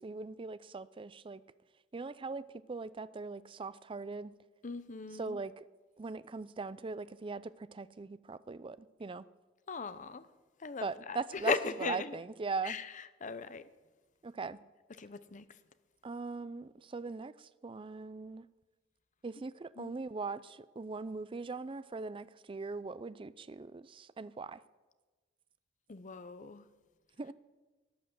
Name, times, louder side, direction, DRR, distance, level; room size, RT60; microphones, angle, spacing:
voice 1, 0.0-1.4 1.9-4.3 5.2-5.6 6.0-9.2 10.8-11.5 11.8-12.8 14.2-14.6 16.0-18.5 19.2-24.6 27.2-27.3, right 4 dB, 25° right, 0.4 m, -40 dB
voice 2, 4.6-5.4 9.7-10.3 10.6-11.2 11.4-12.2 12.6-13.7 15.0-15.5 19.8-19.9 25.9-26.7, left 4 dB, 40° left, 0.7 m, -38 dB
12.0 x 11.0 x 7.8 m
head